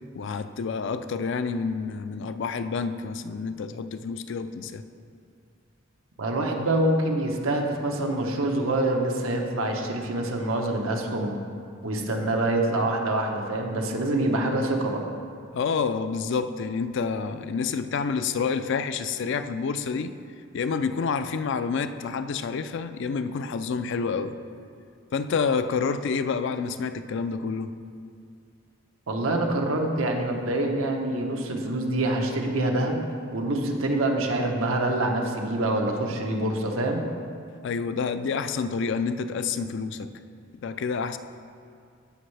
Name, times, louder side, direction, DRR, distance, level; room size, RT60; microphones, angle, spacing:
voice 1, 0.1-4.8 15.5-20.1 20.5-24.4 25.1-27.7 37.6-40.1 40.5-41.2, left 5 dB, 60° left, 11 dB, 0.4 m, -28 dB
voice 2, 6.2-11.3 11.8-15.1 29.1-33.0 33.3-37.1, right 1 dB, 90° right, 2 dB, 1.0 m, -26 dB
15.0 x 5.4 x 3.3 m, 2.3 s
head